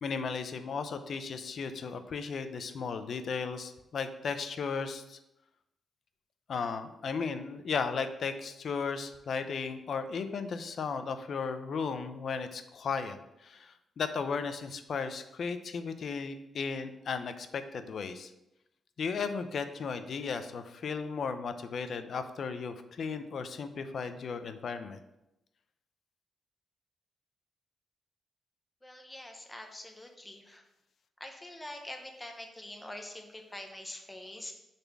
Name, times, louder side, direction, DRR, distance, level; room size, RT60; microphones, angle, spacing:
voice 1, 0.0-5.2 6.5-18.3 19.0-25.0, left 5 dB, 50° left, 9 dB, 0.6 m, -35 dB
voice 2, 28.8-30.6 31.2-34.5, left 1 dB, 10° left, 3 dB, 0.9 m, -45 dB
6.6 x 4.2 x 6.0 m, 0.88 s
wide cardioid pair, 165°, 0 cm